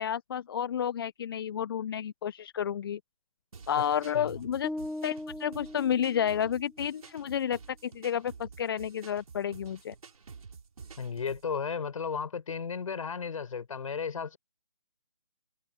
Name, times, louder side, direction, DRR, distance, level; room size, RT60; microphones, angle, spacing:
voice 1, 0.0-3.0 3.7-4.7 5.0-9.9, left 9 dB, 35° left, 1.1 m, -31 dB
sound 1, 3.5-11.5, right 5 dB, 55° right, 4.0 m, -50 dB
sound 2, 4.6-6.8, left 1 dB, ahead, 0.8 m, -39 dB
voice 2, 11.0-14.4, left 6 dB, 55° left, 6.7 m, -34 dB
figure-of-eight pair, 150°, 21 cm